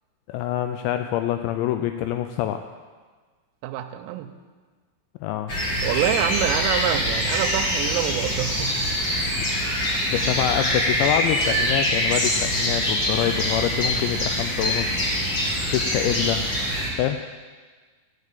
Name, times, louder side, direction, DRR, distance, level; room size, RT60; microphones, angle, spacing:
voice 1, 0.3-2.6 5.2-5.5 9.4-9.5 10.1-15.0 15.7-16.4 17.0-17.2, left 11 dB, 90° left, 7 dB, 2.5 m, -26 dB
voice 2, 3.6-4.3 5.8-9.0, right 11 dB, 90° right, 6 dB, 3.2 m, -26 dB
sound 1, 5.5-16.9, equal, 40° left, 1.8 m, -24 dB
13.5 x 6.6 x 8.4 m, 1.4 s
omnidirectional pair, 5.7 m